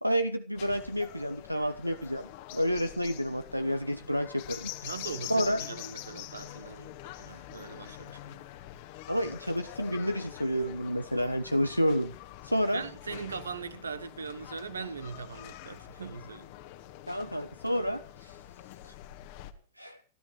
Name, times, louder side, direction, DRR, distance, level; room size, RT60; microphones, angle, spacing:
voice 1, 0.0-4.7 5.3-5.6 9.1-12.1 12.4-12.8 17.1-18.4 18.8-19.0 19.8-20.0, equal, 90° right, 0.7 m, -30 dB
sound 1, 0.5-19.5, left 14 dB, 50° left, 1.6 m, -45 dB
voice 2, 4.8-6.9 7.2-8.4 12.7-16.5, right 5 dB, 75° right, 1.2 m, -40 dB
29.0 x 13.0 x 3.2 m
figure-of-eight pair, 90°, 0 cm